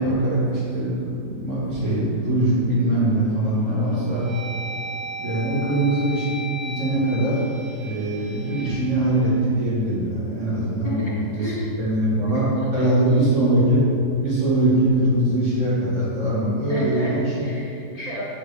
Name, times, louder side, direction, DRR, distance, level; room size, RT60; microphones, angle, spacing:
voice 1, 0.0-4.3 5.2-6.3 6.6-7.4 7.8-11.5 11.8-13.9 14.2-17.5, right 1 dB, 45° right, -9 dB, 1.7 m, -22 dB
sound 1, 2.9-3.4 3.9-10.0, right 1 dB, 70° right, 1.4 m, -36 dB
voice 2, 10.8-11.7 12.6-13.3 16.7-18.2, equal, 25° left, -7 dB, 1.2 m, -33 dB
7.3 x 4.2 x 3.2 m, 2.6 s
omnidirectional pair, 1.9 m